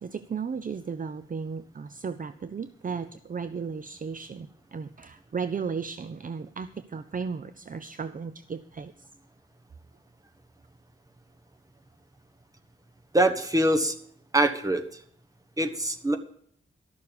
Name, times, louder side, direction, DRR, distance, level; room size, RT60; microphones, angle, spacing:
voice 1, 0.0-9.1, right 5 dB, 40° right, 12 dB, 0.5 m, -35 dB
voice 2, 13.1-13.9 14.3-14.8 15.6-16.2, right 1 dB, 15° right, 6 dB, 1.3 m, -23 dB
12.5 x 6.8 x 8.4 m, 0.63 s
wide cardioid pair, 125°, 21 cm